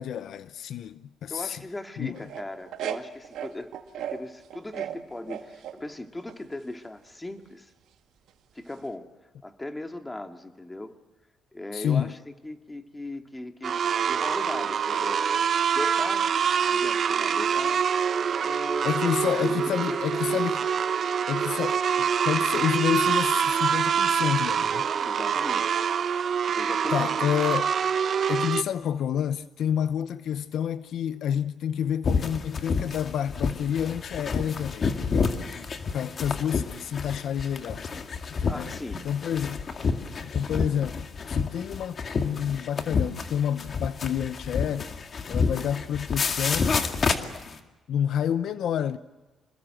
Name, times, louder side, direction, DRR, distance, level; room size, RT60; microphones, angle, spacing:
voice 1, 0.0-1.6 2.0-2.2 11.7-12.1 18.8-20.6 21.3-24.8 26.9-27.7 28.3-37.9 38.4-38.7 39.0-39.7 40.2-44.9 45.3-46.7 47.9-49.0, left 9 dB, 70° left, 0.8 m, -29 dB
voice 2, 1.3-3.7 4.1-7.7 8.5-9.1 9.4-10.9 11.5-15.5 15.7-16.3 16.7-17.8 18.4-20.5 24.7-25.8 26.5-27.3 38.5-39.0, left 1 dB, 15° left, 2.3 m, -38 dB
sound 1, 2.1-4.2 4.5-5.8 6.3-6.7 8.8-8.9, right 10 dB, 80° right, 1.9 m, -35 dB
sound 2, 13.6-28.6, right 7 dB, 55° right, 1.1 m, -25 dB
sound 3, 32.0-47.6, left 5 dB, 45° left, 2.2 m, -29 dB
27.0 x 21.0 x 7.8 m
cardioid pair, 90°, 0 cm